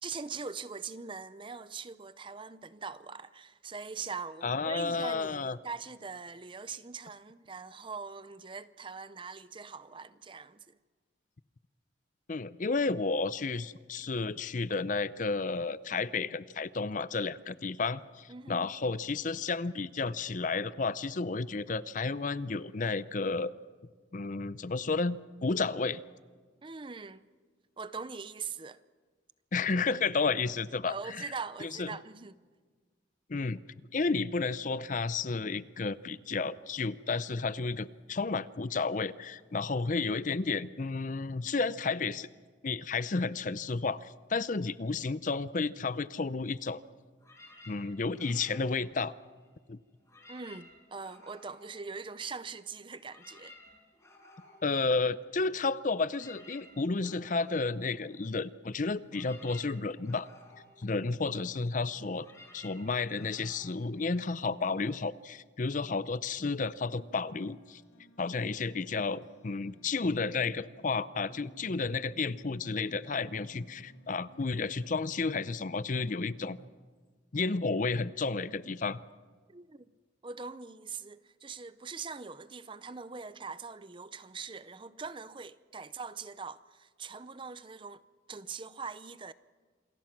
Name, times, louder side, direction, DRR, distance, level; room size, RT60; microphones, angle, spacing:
voice 1, 0.0-10.8 18.3-18.7 26.6-27.3 27.8-28.8 30.3-30.4 30.8-32.4 50.3-53.6 79.5-79.8 80.2-88.0 88.3-89.3, right 5 dB, 25° right, 0.6 m, -42 dB
voice 2, 4.4-5.6 12.3-23.5 24.1-26.0 29.5-31.3 31.6-32.0 33.3-33.6 33.9-42.3 42.6-46.8 47.7-49.2 49.7-49.8 54.6-60.3 60.8-62.3 62.5-67.8 68.2-76.6 77.3-79.0, left 4 dB, 45° left, 0.6 m, -32 dB
sound 1, 47.2-49.6 50.0-52.5 52.8-64.7, left 2 dB, 15° left, 6.9 m, -57 dB
sound 2, 66.7-76.7, equal, 80° left, 3.4 m, -56 dB
27.5 x 22.0 x 6.0 m
head